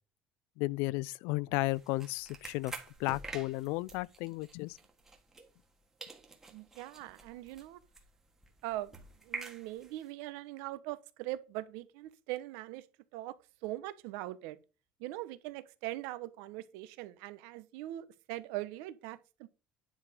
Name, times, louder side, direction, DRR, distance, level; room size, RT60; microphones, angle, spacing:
voice 1, 0.6-2.7 3.0-4.8, left 21 dB, 70° left, 0.4 m, -34 dB
sound 1, 1.6-5.7 6.0-10.1, right 3 dB, 10° right, 1.5 m, -48 dB
voice 2, 6.5-7.8 8.6-12.9 13.1-13.4 13.6-14.6 15.0-19.5, right 16 dB, 80° right, 1.0 m, -41 dB
10.0 x 4.9 x 5.2 m
cardioid pair, 180°, 4 cm